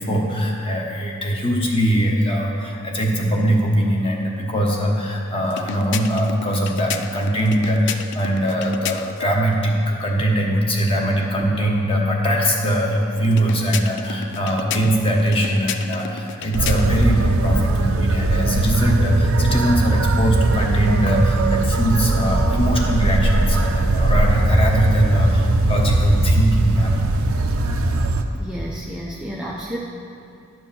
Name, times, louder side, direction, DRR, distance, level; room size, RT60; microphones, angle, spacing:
voice 1, 0.0-26.9, equal, 25° left, -1 dB, 1.1 m, -21 dB
sound 1, 5.4-9.3 13.2-17.1, left 8 dB, 55° left, 0.4 m, -32 dB
sound 2, 16.5-28.2, right 2 dB, 70° right, 0.6 m, -19 dB
voice 2, 28.3-29.8, equal, 5° right, -4 dB, 0.5 m, -31 dB
11.0 x 4.6 x 7.3 m, 2.5 s
head